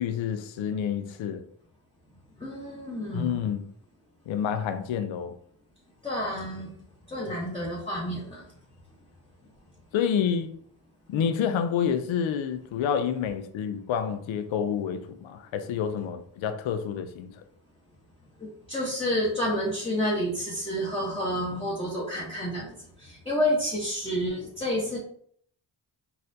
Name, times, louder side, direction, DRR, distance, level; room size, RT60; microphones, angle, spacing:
voice 1, 0.0-1.4 3.1-3.6 4.3-5.3 9.9-10.5 11.1-17.3, left 8 dB, 70° left, 0.5 m, -28 dB
voice 2, 2.4-3.3 6.0-6.7 7.1-8.4 18.7-25.0, equal, 10° left, 0.9 m, -29 dB
4.0 x 2.5 x 2.7 m
supercardioid pair, 50°, 49 cm